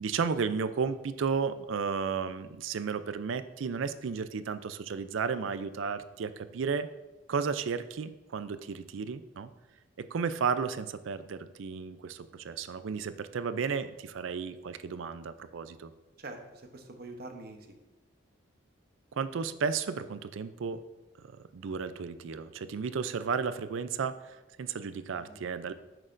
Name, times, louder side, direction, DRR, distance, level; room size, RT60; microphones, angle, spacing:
voice 1, 0.0-6.9 7.3-9.5 10.0-15.9 19.1-20.8 21.5-25.7, right 5 dB, 75° right, 12 dB, 0.4 m, -33 dB
voice 2, 16.2-17.8 25.1-25.6, right 2 dB, 50° right, 5 dB, 0.8 m, -45 dB
8.8 x 6.4 x 2.6 m, 1.1 s
head